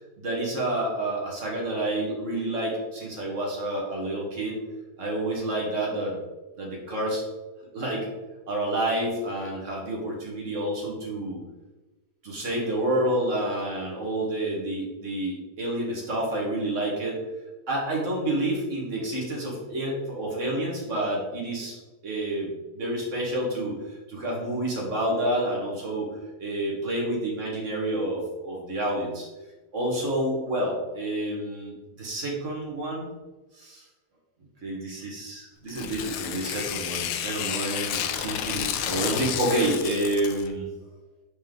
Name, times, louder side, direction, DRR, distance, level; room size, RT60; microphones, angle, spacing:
voice 1, 0.2-4.6 5.0-6.2 6.6-7.2 7.7-8.1 8.5-11.4 12.2-17.2 17.7-26.1 26.4-29.3 29.7-33.1 33.6-33.8 34.6-40.7, right 1 dB, 50° right, -2 dB, 1.9 m, -29 dB
Tearing, 35.7-40.5, left 9 dB, 80° left, 1.1 m, -31 dB
5.4 x 5.1 x 3.8 m, 1.1 s
omnidirectional pair, 1.7 m